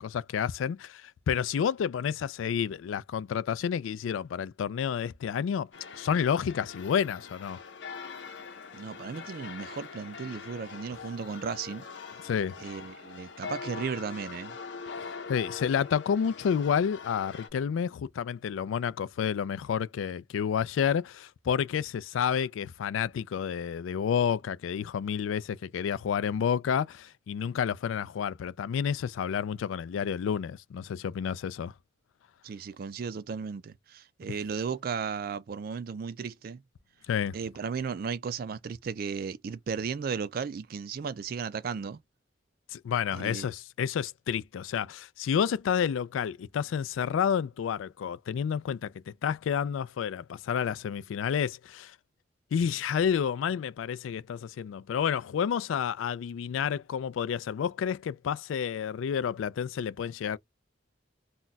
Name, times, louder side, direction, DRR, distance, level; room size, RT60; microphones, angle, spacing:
voice 1, 0.0-5.7 6.0-7.6 12.2-12.6 15.0-31.7 37.1-37.3 42.7-52.0 52.5-60.4, left 7 dB, 90° left, 0.3 m, -30 dB
sound 1, 5.7-17.5, left 5 dB, 70° left, 0.7 m, -43 dB
voice 2, 8.7-11.9 12.6-14.6 32.4-36.6 37.3-42.0 43.1-43.5, right 6 dB, 50° right, 0.3 m, -35 dB
2.3 x 2.2 x 3.9 m
head